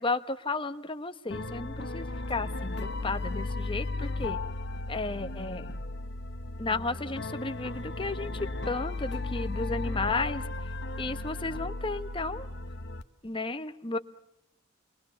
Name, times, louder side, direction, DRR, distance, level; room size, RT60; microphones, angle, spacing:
voice 1, 0.0-4.4 4.9-5.7 6.6-10.4 11.0-12.5 13.2-14.0, left 3 dB, 25° left, 9 dB, 1.1 m, -33 dB
sound 1, 1.3-13.0, left 2 dB, 55° left, 1.2 m, -35 dB
28.5 x 22.0 x 6.9 m, 0.79 s
head